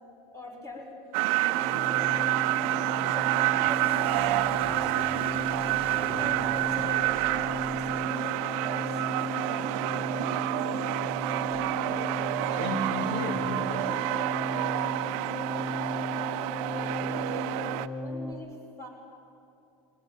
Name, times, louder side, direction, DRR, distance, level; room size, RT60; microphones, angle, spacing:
voice 1, 0.3-2.5 3.1-5.2 5.8-10.1 16.7-17.5 18.0-18.9, left 1 dB, 20° left, 1 dB, 6.2 m, -44 dB
sound 1, 1.1-17.9, right 19 dB, 65° right, 0.7 m, -28 dB
sound 2, 1.5-18.3, left 1 dB, 5° right, 2.0 m, -36 dB
sound 3, 3.7-8.5, right 8 dB, 35° right, 0.9 m, -48 dB
voice 2, 11.5-14.1, left 1 dB, 50° left, 1 dB, 3.1 m, -36 dB
21.0 x 20.5 x 8.8 m, 2.6 s
hypercardioid pair, 95°, 17 cm